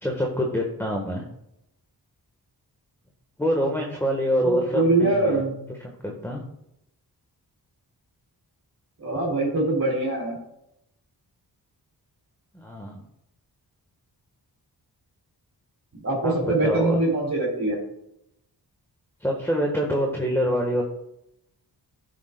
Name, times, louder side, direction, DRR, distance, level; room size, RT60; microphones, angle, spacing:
voice 1, 0.0-1.2 3.4-5.4 5.7-6.4 12.5-13.0 16.2-17.0 19.2-20.8, equal, 5° left, 0 dB, 1.2 m, -26 dB
voice 2, 4.4-5.5 9.0-10.4 15.9-17.8, right 2 dB, 50° right, -6 dB, 2.9 m, -23 dB
11.5 x 6.6 x 2.2 m, 0.81 s
wide cardioid pair, 85°, 39 cm